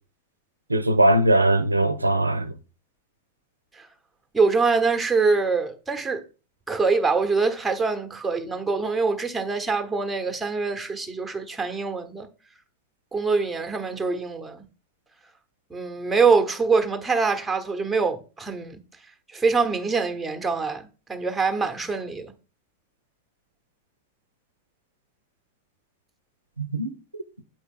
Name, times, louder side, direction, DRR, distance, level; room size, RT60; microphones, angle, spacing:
voice 1, 0.7-2.5 26.6-26.9, right 1 dB, 80° right, 0.5 m, -20 dB
voice 2, 4.3-6.2 6.7-12.3 13.1-14.6 15.7-18.8 19.3-22.3, right 4 dB, 10° right, 1.0 m, -24 dB
7.5 x 4.6 x 3.6 m
figure-of-eight pair, 90°, 0 cm